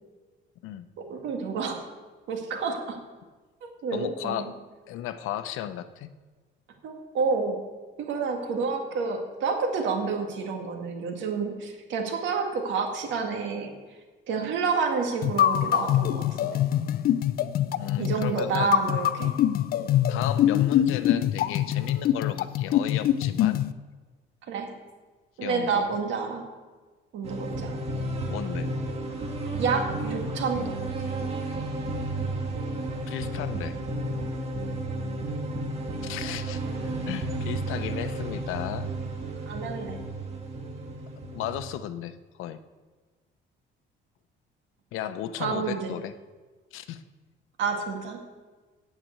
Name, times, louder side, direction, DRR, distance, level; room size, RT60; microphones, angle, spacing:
voice 1, 1.0-1.8 2.3-3.0 3.6-4.5 6.8-7.6 8.0-13.7 14.3-16.6 18.0-19.3 24.5-24.7 25.4-26.4 27.1-27.8 29.6-30.8 39.5-40.0 45.4-46.0 47.6-48.2, right 5 dB, 70° right, 2 dB, 2.0 m, -29 dB
voice 2, 3.9-4.6 4.9-6.1 17.8-18.8 19.8-23.6 25.4-25.9 28.3-28.7 33.1-33.8 36.0-36.6 37.1-38.9 41.3-42.6 44.9-46.1 46.7-47.0, left 11 dB, 90° left, 12 dB, 0.7 m, -35 dB
sound 1, 15.2-23.7, left 11 dB, 50° left, 0.4 m, -24 dB
sound 2, 27.2-41.7, right 2 dB, 30° right, 1.7 m, -32 dB
9.1 x 7.6 x 8.2 m, 1.3 s
cardioid pair, 170°, 20 cm